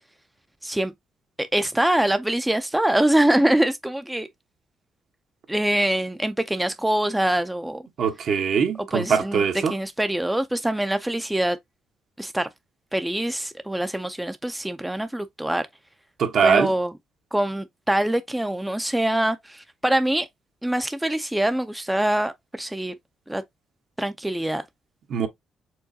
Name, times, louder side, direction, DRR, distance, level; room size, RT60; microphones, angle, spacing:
voice 1, 0.6-0.9 1.4-4.3 5.5-7.8 8.9-9.4 9.7-11.6 12.2-12.5 12.9-15.6 16.4-16.9 17.3-20.3 20.6-22.9 23.3-23.4 24.0-24.6, right 1 dB, 5° right, 0.4 m, -24 dB
voice 2, 8.0-9.7 16.2-16.7 25.1-25.3, right 6 dB, 65° right, 1.0 m, -21 dB
4.7 x 3.7 x 2.6 m
cardioid pair, 90°, 0 cm